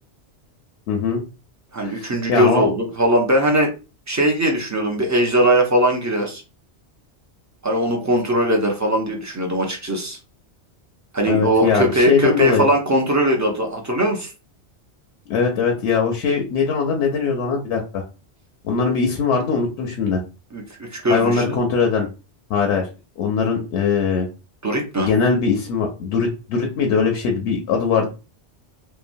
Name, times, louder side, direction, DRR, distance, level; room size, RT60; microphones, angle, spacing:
voice 1, 0.9-1.2 1.8-2.7 11.2-12.7 15.3-18.0 18.6-20.2 21.1-22.1 22.5-22.9 23.2-24.3 25.0-28.1, left 5 dB, 75° left, 2 dB, 0.8 m, -21 dB
voice 2, 1.7-3.7 4.1-6.4 7.6-10.2 11.1-14.3 20.5-21.6 24.6-25.1, right 1 dB, 20° right, 1 dB, 0.5 m, -20 dB
2.9 x 2.2 x 2.5 m, 0.31 s
omnidirectional pair, 1.2 m